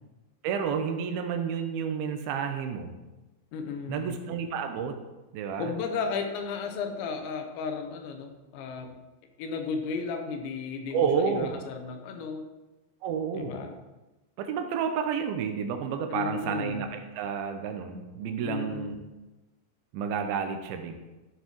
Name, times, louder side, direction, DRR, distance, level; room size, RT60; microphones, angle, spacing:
voice 1, 0.4-2.9 3.9-5.0 5.3-5.7 10.9-11.5 13.0-13.6 14.4-19.0 19.9-21.0, right 6 dB, 80° right, 5 dB, 2.3 m, -30 dB
voice 2, 3.5-4.1 5.6-9.0 9.4-12.5 13.3-13.8 16.1-16.9 18.4-18.9, left 5 dB, 90° left, 5 dB, 3.2 m, -34 dB
13.0 x 6.9 x 3.0 m, 1.1 s
omnidirectional pair, 5.0 m